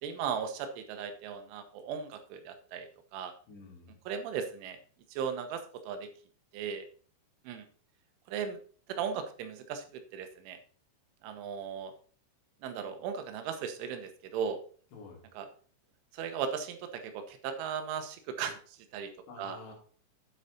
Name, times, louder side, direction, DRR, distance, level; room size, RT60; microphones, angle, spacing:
voice 1, 0.0-3.3 4.1-4.8 5.1-6.1 6.5-6.9 7.5-7.7 8.3-8.6 8.9-10.6 11.2-11.9 12.6-14.6 15.4-15.5 16.1-19.1 19.4-19.6, right 7 dB, 80° right, 7 dB, 3.5 m, -37 dB
voice 2, 3.5-4.0 14.9-15.2 19.3-19.7, left 3 dB, 65° left, -1 dB, 5.1 m, -49 dB
9.6 x 7.8 x 4.1 m, 0.44 s
omnidirectional pair, 5.6 m